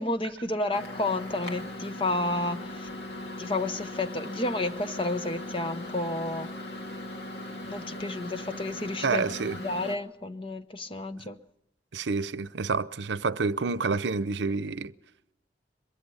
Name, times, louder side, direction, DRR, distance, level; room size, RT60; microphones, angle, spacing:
voice 1, 0.0-2.9 3.4-6.6 7.6-11.4, left 2 dB, 30° left, 0.9 m, -31 dB
Microwave oven, 0.7-10.0, left 1 dB, 60° left, 2.5 m, -39 dB
voice 2, 9.0-9.6 11.9-14.9, right 4 dB, 75° right, 0.7 m, -28 dB
23.0 x 22.0 x 5.6 m
head